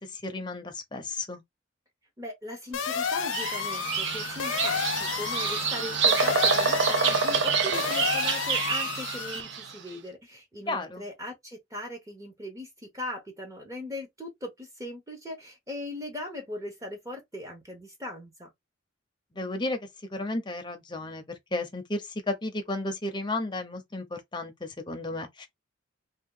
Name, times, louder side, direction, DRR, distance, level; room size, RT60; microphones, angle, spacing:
voice 1, 0.0-1.4 10.7-11.1 19.3-25.5, left 2 dB, 25° left, 0.6 m, -33 dB
voice 2, 2.2-18.5, left 1 dB, 15° right, 0.8 m, -39 dB
sound 1, 2.7-9.4, left 7 dB, 80° left, 0.5 m, -31 dB
Bird vocalization bird call bird song, 3.1-9.7, right 5 dB, 65° right, 0.6 m, -27 dB
2.8 x 2.2 x 3.7 m
head